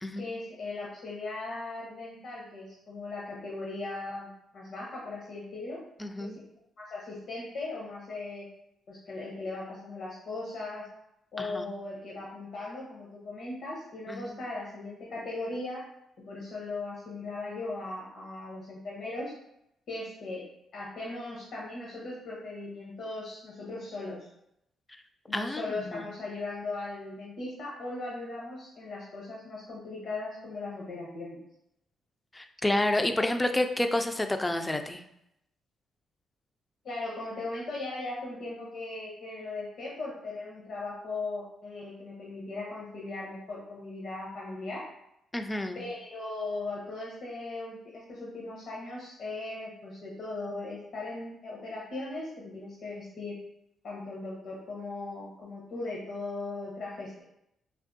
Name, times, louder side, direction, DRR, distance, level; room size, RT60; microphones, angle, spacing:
voice 1, 0.2-5.8 6.2-6.3 6.8-8.5 8.9-10.9 11.3-15.8 16.3-19.3 19.9-20.4 20.7-24.3 25.3-31.4 36.8-44.9 45.7-53.4 53.8-57.2, left 2 dB, 65° left, -4 dB, 0.7 m, -38 dB
voice 2, 6.0-6.3 11.4-11.7 14.1-14.4 25.3-26.1 32.3-35.0 45.3-45.8, left 1 dB, 15° left, 6 dB, 0.3 m, -29 dB
3.4 x 2.3 x 2.6 m, 0.81 s
cardioid pair, 70°, 0 cm